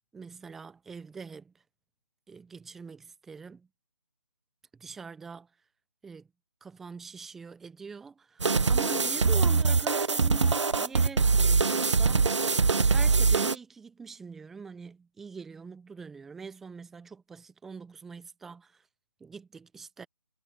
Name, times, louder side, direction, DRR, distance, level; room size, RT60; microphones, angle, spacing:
voice 1, 0.1-1.5 2.3-3.7 4.7-5.5 6.0-6.3 6.6-12.3 12.9-18.8 19.2-20.1, right 5 dB, ahead, 0.6 m, -44 dB
sound 1, 8.4-13.5, right 4 dB, 55° right, 0.9 m, -23 dB
figure-of-eight pair, 155°, 18 cm